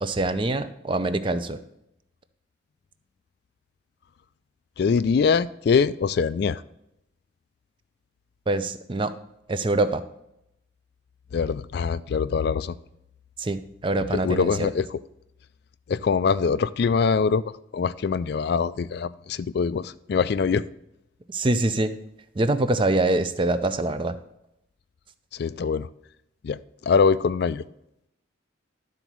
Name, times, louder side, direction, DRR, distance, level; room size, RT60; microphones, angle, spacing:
voice 1, 0.0-1.6 8.5-9.1 9.5-10.0 13.4-14.7 21.3-21.9 22.4-24.2, right 2 dB, 25° right, 11 dB, 0.5 m, -24 dB
voice 2, 4.8-6.6 11.3-12.8 14.2-15.0 15.9-17.4 17.7-20.6 25.3-25.9 26.4-26.6 26.9-27.6, left 5 dB, 55° left, 16 dB, 0.3 m, -23 dB
12.0 x 4.0 x 6.0 m, 0.84 s
head